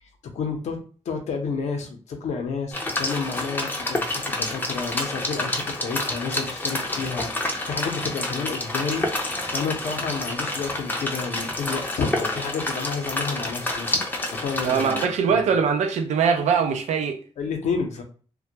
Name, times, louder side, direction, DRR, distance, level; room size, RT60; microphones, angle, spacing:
voice 1, 0.2-0.8 1.1-7.3 7.7-9.1 9.5-14.0 14.3-15.5 17.4-18.0, left 5 dB, 75° left, 0.6 m, -30 dB
sound 1, 2.7-15.0, left 2 dB, 15° left, 0.4 m, -28 dB
voice 2, 14.6-17.2, right 6 dB, 90° right, 0.4 m, -22 dB
2.2 x 2.1 x 2.7 m
cardioid pair, 115°, 12 cm